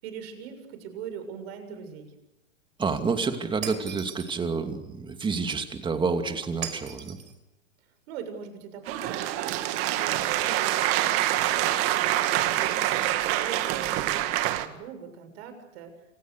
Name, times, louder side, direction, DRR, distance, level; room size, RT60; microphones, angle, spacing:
voice 1, 0.0-2.2 8.1-11.3 11.7-14.3 14.6-16.0, right 7 dB, 50° right, 8 dB, 7.2 m, -41 dB
voice 2, 2.8-7.2, right 4 dB, 10° right, 7 dB, 2.7 m, -29 dB
Shatter, 3.6-4.4 6.6-7.3, right 7 dB, 80° right, 5.6 m, -38 dB
sound 1, 8.9-14.7, right 14 dB, 35° right, 2.0 m, -26 dB
28.0 x 26.5 x 6.6 m, 0.94 s
hypercardioid pair, 130°, 40 cm